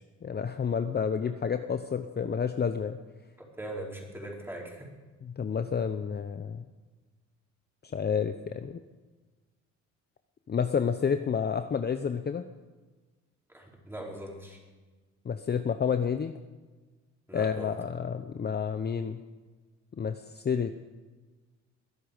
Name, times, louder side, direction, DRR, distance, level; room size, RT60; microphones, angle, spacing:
voice 1, 0.0-3.0 5.2-6.6 7.8-8.8 10.5-12.4 15.2-16.3 17.3-19.2 20.0-20.7, left 6 dB, 35° left, 9 dB, 0.8 m, -30 dB
voice 2, 3.4-4.9 13.5-14.6 17.3-17.8, right 1 dB, 5° right, -2 dB, 4.8 m, -41 dB
21.5 x 11.5 x 5.2 m, 1.3 s
cardioid pair, 90°, 30 cm